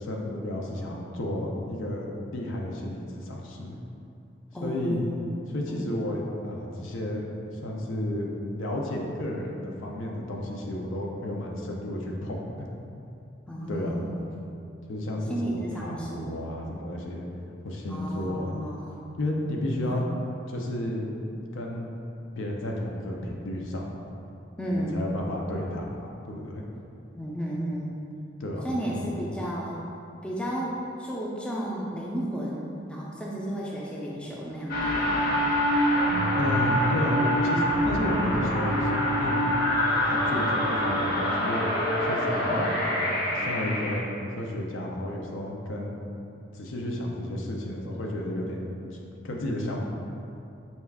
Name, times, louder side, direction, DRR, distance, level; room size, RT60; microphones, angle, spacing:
voice 1, 0.0-3.8 4.6-5.0 5.5-7.3 7.5-12.7 13.7-14.1 14.9-17.2 17.6-18.5 19.2-20.0 20.5-21.1 21.5-21.9 22.4-23.9 24.7-26.6 28.4-29.1 36.4-39.5 40.0-41.6 42.0-46.0 46.5-48.7 49.2-49.8, left 1 dB, 90° left, -1 dB, 0.5 m, -32 dB
voice 2, 4.5-5.2 5.7-5.8 13.5-14.3 15.3-16.4 17.9-19.0 19.8-20.0 24.6-25.1 27.1-27.9 28.6-29.8 30.2-35.3 42.5-42.6, equal, 5° left, -5 dB, 0.3 m, -33 dB
sound 1, 34.7-44.0, equal, 50° left, 0.7 m, -25 dB
4.2 x 2.3 x 3.5 m, 2.7 s
head